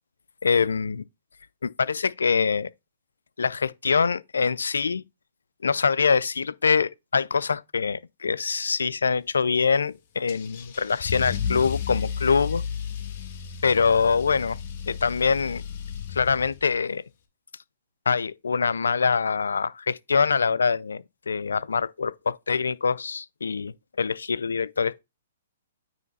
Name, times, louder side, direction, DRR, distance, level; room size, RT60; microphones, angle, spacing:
voice 1, 0.4-1.0 1.6-2.7 3.4-5.0 5.6-12.6 13.6-14.6 14.9-15.6 16.1-17.0 18.1-25.0, left 5 dB, 90° left, 0.4 m, -24 dB
Car / Engine starting / Accelerating revving vroom, 10.3-16.8, left 7 dB, 50° left, 1.5 m, -33 dB
9.1 x 3.2 x 4.1 m
hypercardioid pair, 135°, 0 cm